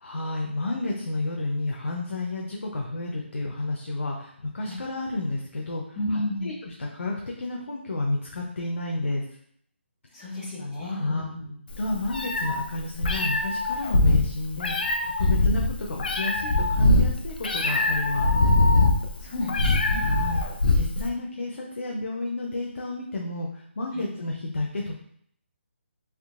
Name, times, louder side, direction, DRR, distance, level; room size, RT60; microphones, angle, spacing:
voice 1, 0.0-9.2 10.8-11.3 11.8-18.3 19.9-20.4 20.7-25.0, left 2 dB, 90° left, -1 dB, 0.6 m, -31 dB
voice 2, 6.0-6.5 10.1-11.5 15.2-15.3 19.2-20.0 23.9-24.0, left 1 dB, 10° left, -9 dB, 0.8 m, -32 dB
Meow, 11.7-21.1, left 2 dB, 45° left, 0.4 m, -22 dB
3.6 x 2.7 x 2.4 m, 0.66 s
hypercardioid pair, 175°, 7 cm